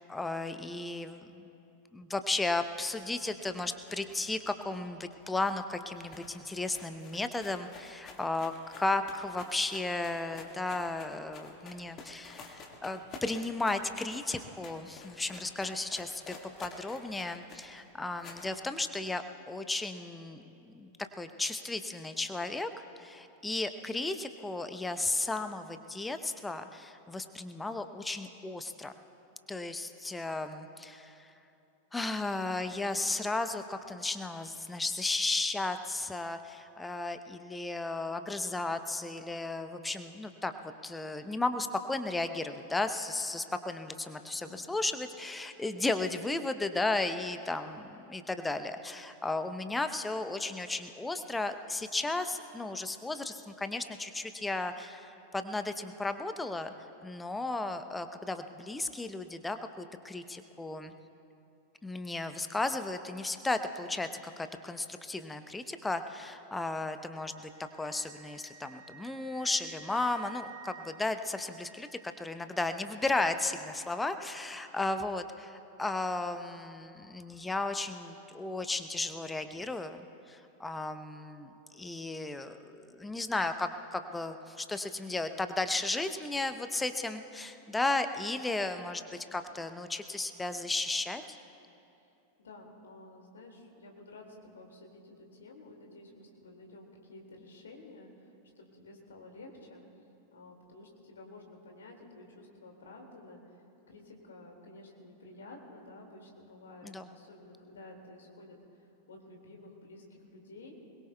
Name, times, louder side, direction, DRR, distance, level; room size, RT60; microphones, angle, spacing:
voice 1, 0.0-1.4 1.9-28.9 29.5-31.3 31.9-56.7 57.0-60.9 61.8-67.5 67.8-91.4 106.8-107.1, left 2 dB, 10° left, 9 dB, 0.8 m, -34 dB
sound 1, 2.7-5.3 5.6-5.7 5.9-18.6, left 4 dB, 35° left, 1.8 m, -51 dB
voice 2, 44.3-44.7 92.4-98.3 98.6-99.8 100.3-103.6 103.9-108.6 109.1-110.8, left 2 dB, 70° left, 1 dB, 2.2 m, -51 dB
Wind instrument woodwind instrument, 66.8-72.8, right 6 dB, 50° right, 0.9 m, -54 dB
22.5 x 21.0 x 2.3 m, 2.8 s
figure-of-eight pair, 90°, 0 cm